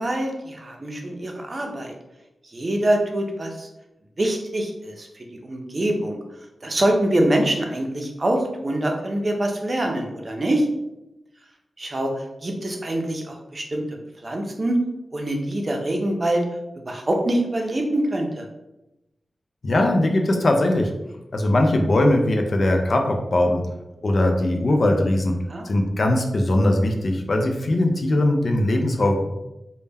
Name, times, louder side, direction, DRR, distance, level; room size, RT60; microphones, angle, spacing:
voice 1, 0.0-1.9 2.4-3.7 4.2-6.2 6.6-10.7 11.8-13.8 14.2-14.8 15.1-16.4 16.9-18.5 25.5-25.6, right 1 dB, 45° right, 2 dB, 0.5 m, -24 dB
voice 2, 19.6-20.9 21.3-23.6 24.0-25.4 25.6-29.3, left 1 dB, 60° left, 3 dB, 0.4 m, -20 dB
2.1 x 2.1 x 3.3 m, 0.92 s
cardioid pair, 50°, 0 cm